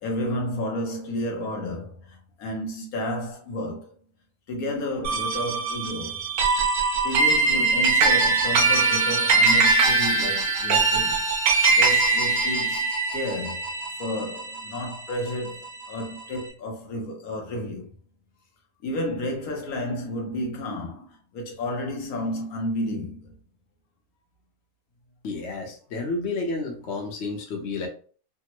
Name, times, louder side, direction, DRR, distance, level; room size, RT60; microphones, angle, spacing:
voice 1, 0.0-3.9 4.5-6.3 7.0-11.2 11.8-12.9 13.1-17.9 18.8-23.4, left 1 dB, 75° left, 1.2 m, -31 dB
sound 1, 5.0-15.7, right 3 dB, 70° right, 1.3 m, -22 dB
voice 2, 25.2-27.9, left 3 dB, 55° left, 0.9 m, -31 dB
3.4 x 2.0 x 2.9 m
omnidirectional pair, 1.5 m